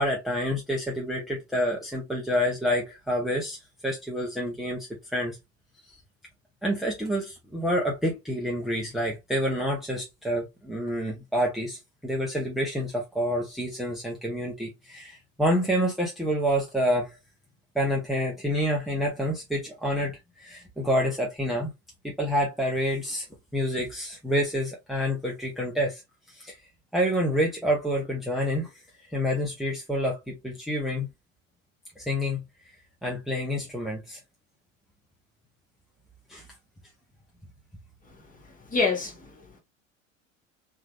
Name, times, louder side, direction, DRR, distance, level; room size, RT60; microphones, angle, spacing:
voice 1, 0.0-3.6 3.8-5.4 6.6-17.2 17.7-21.7 22.0-23.2 23.5-26.0 26.3-26.5 26.9-28.7 29.1-31.1 32.0-32.4 33.0-34.2 36.3-36.4, equal, ahead, 1.2 m, -28 dB
voice 2, 38.3-39.6, left 4 dB, 20° left, 1.8 m, -28 dB
3.7 x 3.2 x 3.2 m
figure-of-eight pair, 75°, 39 cm